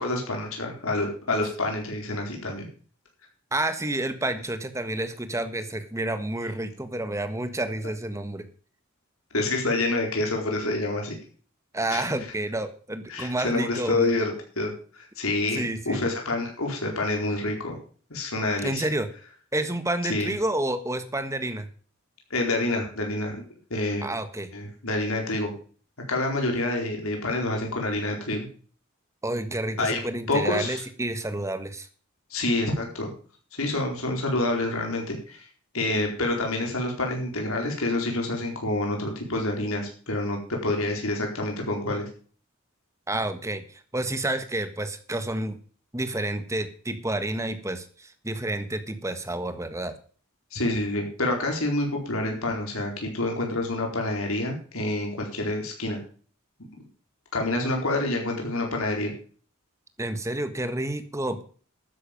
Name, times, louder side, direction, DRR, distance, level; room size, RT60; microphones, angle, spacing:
voice 1, 0.0-2.7 9.3-11.1 11.9-12.0 13.1-14.3 14.6-17.8 18.1-18.8 20.1-20.3 22.3-23.4 23.7-24.1 24.5-25.5 26.1-28.5 29.8-30.0 30.3-30.8 32.3-33.1 33.5-35.5 35.7-42.1 50.5-56.0 57.3-59.1, left 2 dB, 75° left, 1 dB, 4.4 m, -27 dB
voice 2, 3.5-8.4 11.7-14.1 15.5-16.1 18.6-19.1 19.5-21.7 24.0-24.5 29.2-31.9 43.1-45.6 45.9-49.9 60.0-61.4, right 1 dB, 15° right, 9 dB, 1.5 m, -29 dB
12.5 x 9.8 x 5.3 m, 0.43 s
head